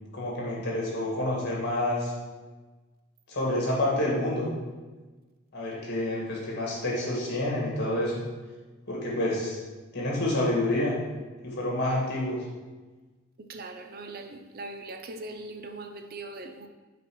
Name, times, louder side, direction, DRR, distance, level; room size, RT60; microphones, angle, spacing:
voice 1, 0.1-2.1 3.3-4.5 5.5-8.2 8.9-9.6 9.9-10.9 11.4-12.4, left 1 dB, 55° left, -4 dB, 2.1 m, -28 dB
voice 2, 13.4-16.7, right 2 dB, 45° right, 5 dB, 0.5 m, -40 dB
5.4 x 4.3 x 6.2 m, 1.3 s
head